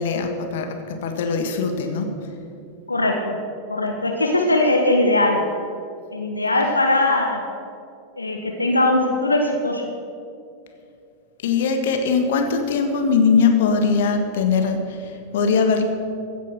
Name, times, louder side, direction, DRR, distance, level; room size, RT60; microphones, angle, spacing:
voice 1, 0.0-2.3 11.4-15.8, left 5 dB, 55° left, 6 dB, 1.6 m, -21 dB
voice 2, 2.9-3.4 3.7-5.4 6.1-7.4 8.2-9.8, left 2 dB, 80° left, 2 dB, 1.2 m, -20 dB
15.5 x 9.1 x 6.6 m, 2.5 s
figure-of-eight pair, 90°, 0 cm